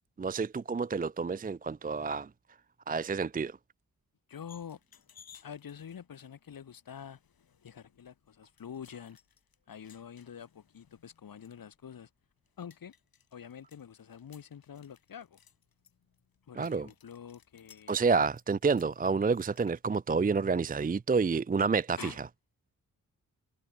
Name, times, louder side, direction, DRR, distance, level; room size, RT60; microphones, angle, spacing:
voice 1, 0.2-2.3 2.9-3.6 16.6-16.9 17.9-22.1, right 5 dB, 25° right, 0.5 m, -29 dB
voice 2, 4.3-4.8 5.4-7.2 7.6-9.2 9.7-12.1 12.6-12.9 13.3-15.4 16.5-18.0 22.0-22.2, left 8 dB, 75° left, 1.8 m, -46 dB
sound 1, 4.5-21.9, left 7 dB, 90° left, 6.2 m, -63 dB
wide cardioid pair, 115°, 35 cm